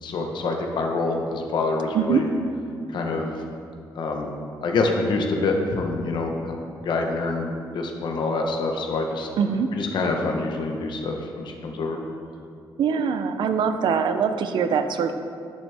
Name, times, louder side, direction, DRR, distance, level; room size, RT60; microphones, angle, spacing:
voice 1, 0.0-2.3 2.9-3.3 3.9-4.3 4.6-6.5 6.8-9.3 9.7-12.0, left 3 dB, 70° left, 2 dB, 1.0 m, -26 dB
voice 2, 9.4-9.7 12.8-15.1, right 6 dB, 70° right, 9 dB, 0.5 m, -23 dB
10.5 x 6.1 x 3.5 m, 2.4 s
cardioid pair, 120°, 8 cm